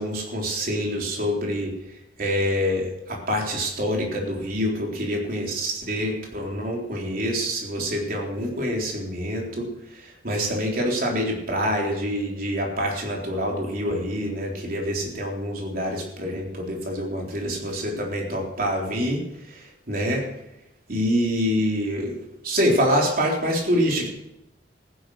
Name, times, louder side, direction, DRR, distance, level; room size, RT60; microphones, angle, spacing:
voice 1, 0.0-1.7 2.2-9.7 9.9-20.2 20.9-22.1 22.4-24.1, equal, 55° right, 0 dB, 3.8 m, -26 dB
15.5 x 10.5 x 6.4 m, 0.86 s
head